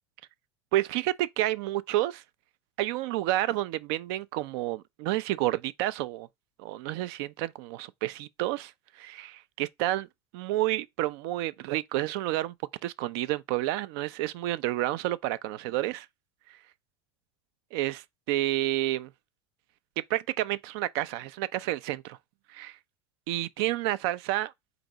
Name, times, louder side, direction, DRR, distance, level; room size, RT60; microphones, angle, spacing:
voice 1, 0.7-2.2 2.8-6.3 6.6-8.7 9.0-10.1 10.3-12.5 12.8-16.1 17.7-19.1 20.1-22.2 22.5-22.8 23.3-24.5, right 15 dB, 60° right, 0.4 m, -30 dB
3.9 x 3.4 x 3.9 m
hypercardioid pair, 85°, 14 cm